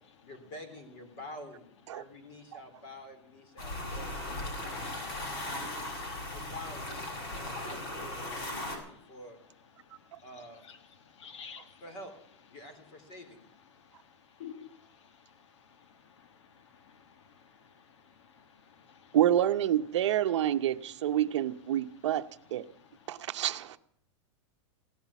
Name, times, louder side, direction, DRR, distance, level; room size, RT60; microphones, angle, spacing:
voice 1, 0.2-4.1 4.6-5.5 6.3-9.4 10.2-10.7 11.8-12.1 12.5-13.5, left 1 dB, 35° left, 3.5 m, -48 dB
sound 1, 3.6-8.8, left 1 dB, 55° left, 6.2 m, -37 dB
voice 2, 5.8-6.2 7.7-7.8 8.6-9.0 9.8-10.0 10.7-11.8 13.7-14.7 15.2-19.2 22.7-23.4, left 7 dB, 80° left, 1.8 m, -53 dB
voice 3, 19.1-22.7 23.1-23.8, right 11 dB, 80° right, 0.8 m, -28 dB
17.0 x 11.5 x 7.1 m
supercardioid pair, 175°, 15 cm